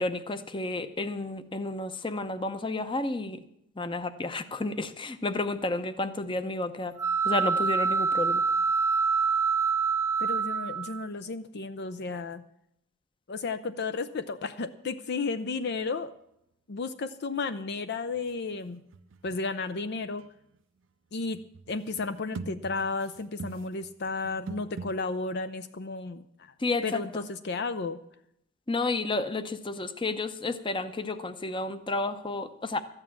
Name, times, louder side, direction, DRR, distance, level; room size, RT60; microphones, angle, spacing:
voice 1, 0.0-3.4 3.8-7.0 7.2-8.4 26.6-27.2 28.7-32.8, left 2 dB, 25° left, 11 dB, 0.8 m, -31 dB
sound 1, 7.0-11.1, right 5 dB, 15° right, 0.7 m, -26 dB
voice 2, 10.2-12.4 13.3-16.1 16.7-18.8 19.2-20.2 21.1-21.4 21.7-26.5 26.8-28.0, left 4 dB, 55° left, 11 dB, 0.5 m, -33 dB
sound 2, 15.3-15.4 15.6-16.1 18.0-25.3, right 4 dB, 65° right, 0.5 m, -45 dB
13.5 x 9.0 x 7.3 m, 0.77 s
head